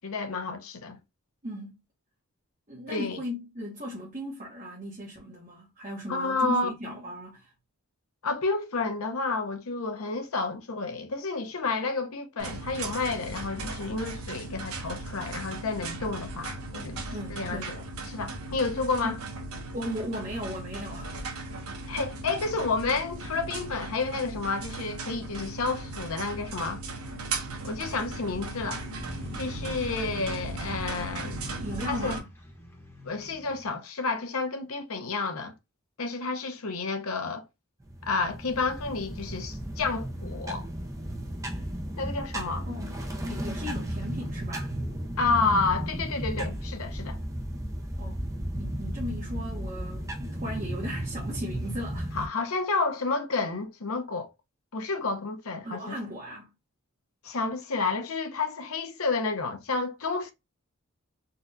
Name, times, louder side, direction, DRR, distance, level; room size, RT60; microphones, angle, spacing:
voice 1, 0.0-1.0 2.9-3.2 6.1-6.7 8.2-17.8 18.1-19.2 21.9-26.8 27.6-28.8 29.4-31.5 31.9-32.2 33.0-35.5 36.0-37.4 38.1-40.7 42.0-42.7 45.2-47.2 52.1-54.3 54.7-56.0 57.2-60.3, left 3 dB, 70° left, 0.7 m, -30 dB
voice 2, 1.4-1.8 2.7-7.5 17.1-17.8 19.0-19.2 19.7-21.4 31.4-32.3 42.7-44.7 48.0-48.2 48.6-52.2 55.6-56.5, equal, 35° right, 0.9 m, -37 dB
sound 1, 12.4-32.2, right 2 dB, 75° right, 0.9 m, -37 dB
sound 2, 27.9-33.7, left 1 dB, 10° left, 1.0 m, -44 dB
sound 3, 37.8-52.3, right 1 dB, 15° right, 0.5 m, -34 dB
4.0 x 2.3 x 2.5 m
head